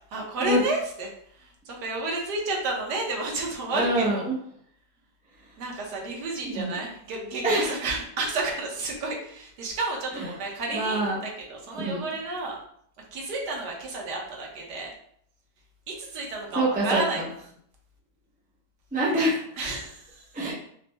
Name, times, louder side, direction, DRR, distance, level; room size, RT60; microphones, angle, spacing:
voice 1, 0.1-4.2 5.6-12.6 13.1-14.9 16.0-17.2 19.6-20.2, right 2 dB, 70° right, -1 dB, 1.4 m, -31 dB
voice 2, 3.7-4.3 6.4-6.8 7.4-7.7 10.1-10.3 10.7-11.3 11.9-12.0 16.5-17.0 18.9-19.4 20.3-20.5, right 1 dB, 15° right, -5 dB, 0.3 m, -25 dB
4.1 x 2.1 x 3.3 m, 0.67 s
omnidirectional pair, 1.9 m